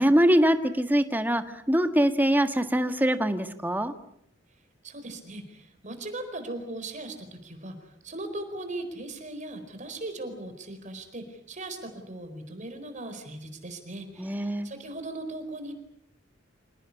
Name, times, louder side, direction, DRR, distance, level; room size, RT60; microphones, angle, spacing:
voice 1, 0.0-3.9 14.2-14.7, equal, 10° right, 8 dB, 1.6 m, -23 dB
voice 2, 4.8-15.7, right 2 dB, 40° right, 7 dB, 4.6 m, -39 dB
27.5 x 18.5 x 9.8 m, 0.74 s
head